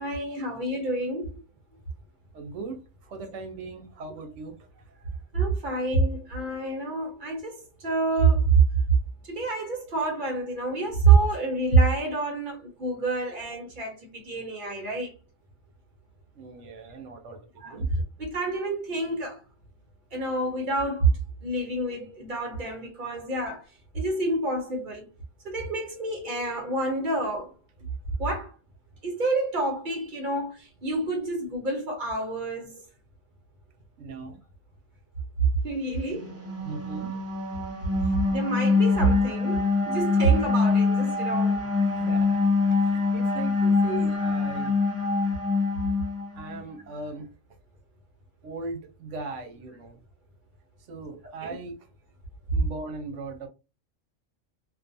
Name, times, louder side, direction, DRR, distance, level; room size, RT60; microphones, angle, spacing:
voice 1, 0.0-1.4 4.1-4.2 5.3-8.6 9.2-15.1 17.6-19.4 20.1-23.6 23.9-25.1 25.4-27.5 28.2-28.5 29.0-32.8 35.6-36.4 38.1-41.6 43.9-44.0 51.4-51.6, right 3 dB, 45° right, 1.0 m, -27 dB
voice 2, 2.3-4.7 16.4-17.4 17.7-17.9 34.0-34.4 36.6-37.1 41.8-44.7 46.3-47.3 48.4-50.0 50.9-51.7 52.5-53.5, right 3 dB, 80° right, 1.0 m, -39 dB
sound 1, 36.1-46.6, left 4 dB, 15° right, 0.5 m, -25 dB
2.5 x 2.3 x 2.6 m
omnidirectional pair, 1.3 m